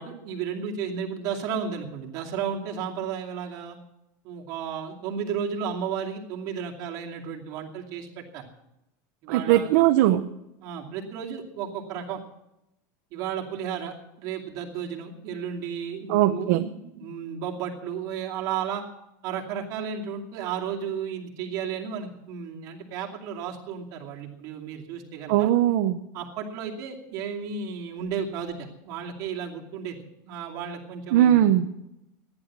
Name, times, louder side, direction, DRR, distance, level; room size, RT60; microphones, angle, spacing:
voice 1, 0.0-3.8 4.2-8.5 9.2-9.7 10.6-12.2 13.1-18.8 19.2-25.5 26.1-30.0 30.2-31.5, right 7 dB, 40° right, -1 dB, 2.7 m, -33 dB
voice 2, 9.3-10.2 16.1-16.6 25.3-26.0 31.1-31.7, right 12 dB, 55° right, 6 dB, 0.8 m, -20 dB
14.5 x 10.5 x 7.4 m, 0.88 s
supercardioid pair, 170°, 10 cm